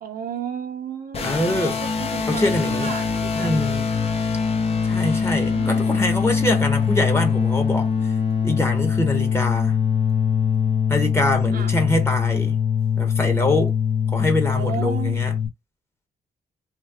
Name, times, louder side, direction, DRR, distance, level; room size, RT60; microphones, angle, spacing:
voice 1, 0.0-3.9 5.3-6.0 11.5-11.8 14.5-15.3, right 8 dB, 70° right, 0.9 m, -34 dB
sound 1, 1.1-15.5, left 7 dB, 40° left, 0.8 m, -22 dB
voice 2, 1.2-1.8 2.3-3.0 3.3-3.8 4.8-8.1 8.4-9.8 10.9-12.6 13.0-13.7 14.1-15.4, left 1 dB, 15° left, 1.2 m, -24 dB
3.1 x 2.2 x 3.5 m
cardioid pair, 115°, 16 cm